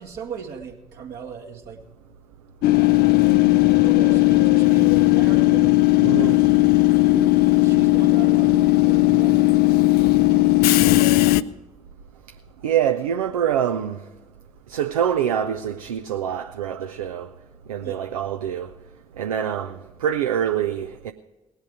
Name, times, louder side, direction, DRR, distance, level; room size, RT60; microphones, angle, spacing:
voice 1, 0.0-1.8 3.5-5.8 7.4-9.5 10.3-11.5 17.8-18.1, right 6 dB, 65° right, 1.8 m, -39 dB
Train / Subway metro underground, 2.6-11.4, left 17 dB, 65° left, 0.4 m, -17 dB
voice 2, 6.0-6.4 12.6-14.0 14.7-17.3 17.7-18.7 19.2-21.1, right 9 dB, 85° right, 0.4 m, -25 dB
18.5 x 8.0 x 4.9 m
figure-of-eight pair, 45°, 18 cm